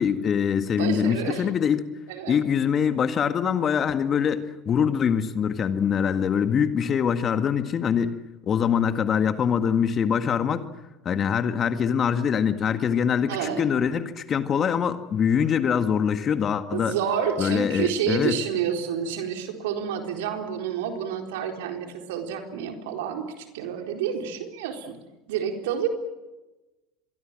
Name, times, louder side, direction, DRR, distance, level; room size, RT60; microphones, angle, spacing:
voice 1, 0.0-1.9 2.3-8.2 8.5-10.7 11.1-17.0 17.4-18.4, left 7 dB, 35° left, 10 dB, 1.9 m, -24 dB
voice 2, 0.7-1.5 2.1-2.4 13.3-13.7 16.7-25.0 25.3-25.9, right 8 dB, 70° right, 4 dB, 4.1 m, -29 dB
25.5 x 23.0 x 7.7 m, 1.1 s
hypercardioid pair, 75°, 0 cm